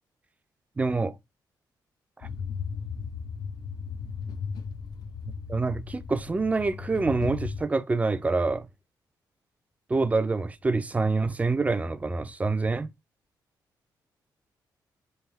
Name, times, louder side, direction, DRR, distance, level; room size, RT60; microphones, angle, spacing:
voice 1, 0.8-1.1 5.5-8.7 9.9-12.9, right 3 dB, 20° right, 0.4 m, -26 dB
sound 1, 2.2-7.6, left 6 dB, 60° left, 0.5 m, -36 dB
3.4 x 2.6 x 3.3 m
cardioid pair, 95°, 8 cm